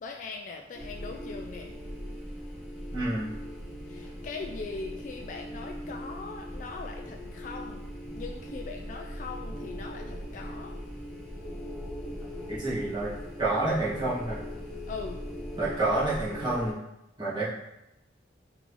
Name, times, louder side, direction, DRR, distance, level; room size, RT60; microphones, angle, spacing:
voice 1, 0.0-1.7 3.9-7.8 8.1-10.7 14.9-15.2, left 4 dB, 45° left, 2 dB, 0.3 m, -40 dB
sound 1, 0.7-16.7, equal, 5° left, 0.8 m, -39 dB
voice 2, 2.9-3.3 12.5-13.1 13.4-14.4 15.6-16.7 17.2-17.5, right 2 dB, 25° right, -9 dB, 1.5 m, -28 dB
3.7 x 3.7 x 3.1 m, 0.89 s
head